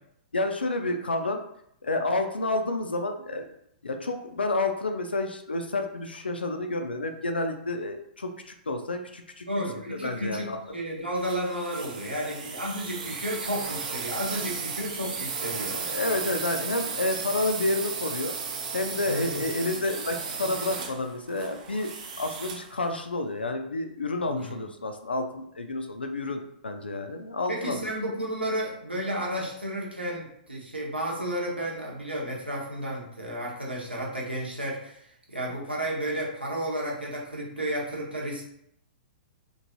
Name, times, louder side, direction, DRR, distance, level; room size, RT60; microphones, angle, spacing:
voice 1, 0.3-1.4 1.8-3.5 3.8-9.4 9.9-10.6 12.2-12.3 15.7-18.3 18.7-21.9 22.2-27.9, left 2 dB, 75° left, 6 dB, 0.3 m, -30 dB
voice 2, 9.5-15.8 19.0-19.4 24.2-24.6 27.5-38.4, right 1 dB, 85° right, -3 dB, 0.9 m, -32 dB
sound 1, 11.2-22.7, right 5 dB, 45° right, 0.5 m, -35 dB
3.0 x 2.5 x 2.7 m, 0.73 s
figure-of-eight pair, 110°, 5 cm